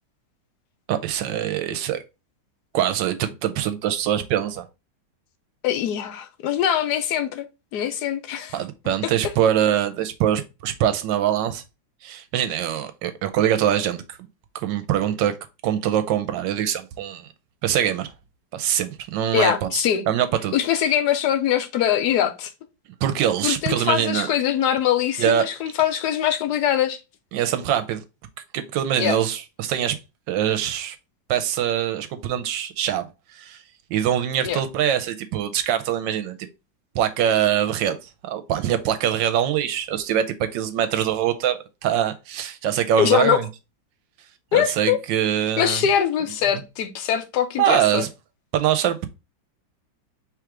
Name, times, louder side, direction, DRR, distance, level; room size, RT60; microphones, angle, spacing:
voice 1, 0.9-2.0 2.7-4.6 8.5-11.6 12.0-14.2 14.5-15.3 15.6-17.3 17.6-18.1 18.5-20.5 23.0-24.3 25.2-25.5 27.3-28.0 28.5-30.0 30.3-31.0 31.3-33.1 33.3-33.6 33.9-36.4 36.9-43.5 44.5-45.8 47.6-48.1 48.5-49.1, right 10 dB, 75° right, 1.2 m, -23 dB
voice 2, 5.6-7.5 7.7-8.6 9.0-9.1 19.3-20.1 20.5-22.5 23.4-27.0 29.0-29.2 34.4-34.6 43.0-43.4 44.5-45.0 45.6-48.0, left 10 dB, 70° left, 1.0 m, -22 dB
4.8 x 3.1 x 3.6 m
omnidirectional pair, 2.1 m